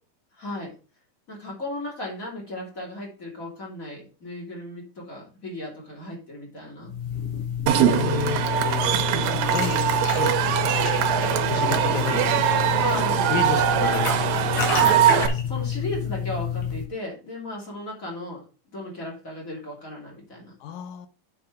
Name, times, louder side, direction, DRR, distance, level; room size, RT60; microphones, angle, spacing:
voice 1, 0.3-0.7 1.3-6.9 7.9-8.7 12.7-14.0 14.7-18.4 18.7-20.5, left 1 dB, 25° left, -2 dB, 3.0 m, -35 dB
sound 1, 6.8-16.9, left 8 dB, 65° left, 3.5 m, -29 dB
Cheering / Crowd, 7.7-15.3, right 10 dB, 90° right, 2.6 m, -22 dB
voice 2, 7.8-9.0 9.5-9.9 10.2-10.7 11.3-12.6 12.9-13.0 13.3-14.4 20.6-21.1, left 7 dB, 85° left, 10 dB, 2.7 m, -32 dB
8.5 x 5.2 x 4.7 m, 0.36 s
omnidirectional pair, 3.9 m